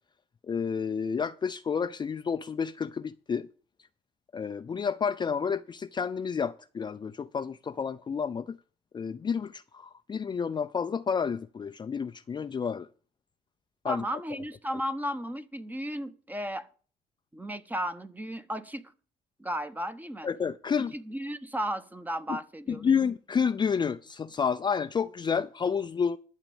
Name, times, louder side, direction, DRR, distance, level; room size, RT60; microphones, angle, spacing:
voice 1, 0.5-3.5 4.3-8.6 8.9-12.9 13.8-14.0 14.3-14.4 20.2-21.0 22.3-22.4 22.7-26.2, left 6 dB, 25° left, 0.5 m, -30 dB
voice 2, 13.8-16.7 17.3-18.9 19.4-20.3 20.9-23.0, equal, 10° right, 1.0 m, -34 dB
12.0 x 7.4 x 7.0 m
cardioid pair, 110°, 17 cm